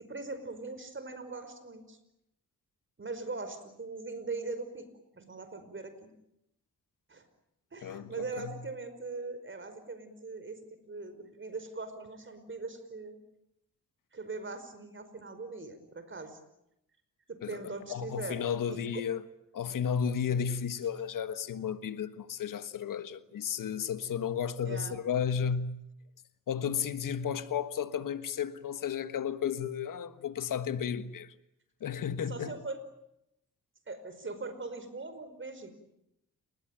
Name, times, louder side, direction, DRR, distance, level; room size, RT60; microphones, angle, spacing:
voice 1, 0.0-2.0 3.0-4.8 5.1-5.9 7.1-7.2 7.7-13.2 14.1-16.4 17.3-18.4 18.7-19.0 24.6-25.0 32.3-32.8 33.9-35.7, right 3 dB, 40° right, 5.2 m, -41 dB
voice 2, 7.8-8.6 17.4-17.6 17.9-19.2 19.5-25.8 26.5-31.3 31.8-32.5, left 7 dB, 90° left, 1.4 m, -33 dB
30.0 x 20.0 x 9.0 m
cardioid pair, 100°, 32 cm